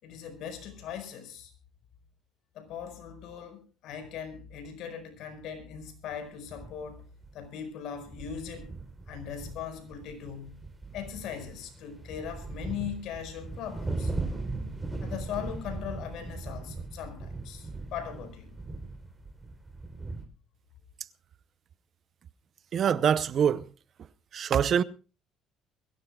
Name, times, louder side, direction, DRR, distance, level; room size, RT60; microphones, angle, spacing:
voice 1, 0.0-1.5 2.5-7.1 7.3-8.7 9.1-10.6 10.9-14.1 15.0-18.6, left 8 dB, 70° left, 5.1 m, -39 dB
sound 1, 6.1-6.2 6.5-7.0 7.2-7.5 7.9-20.2, right 3 dB, 15° right, 3.8 m, -38 dB
voice 2, 22.7-23.7 24.3-24.8, right 8 dB, 50° right, 0.8 m, -24 dB
22.5 x 16.5 x 2.4 m
cardioid pair, 105°, 0 cm